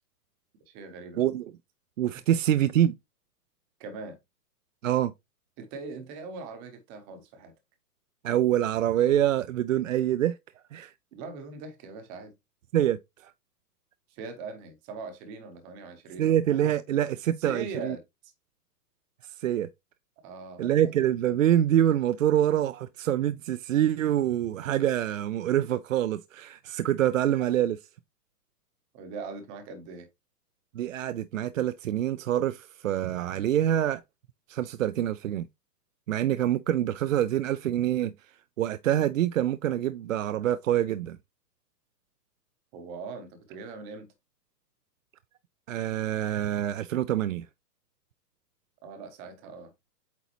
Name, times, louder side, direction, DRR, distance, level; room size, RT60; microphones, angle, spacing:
voice 1, 0.7-1.3 3.8-4.2 5.6-7.5 11.1-12.3 14.1-16.4 17.4-18.3 20.2-20.9 28.9-30.1 42.7-44.1 48.8-49.9, right 4 dB, 15° right, 0.7 m, -41 dB
voice 2, 2.0-3.0 4.8-5.1 8.2-10.4 10.7-10.9 12.7-13.0 13.2-13.3 16.2-18.0 19.4-19.7 20.6-27.8 30.7-34.0 34.5-35.5 36.1-38.1 38.6-41.2 45.7-47.5, right 11 dB, 55° right, 0.5 m, -25 dB
8.3 x 4.0 x 3.0 m
hypercardioid pair, 165°, 49 cm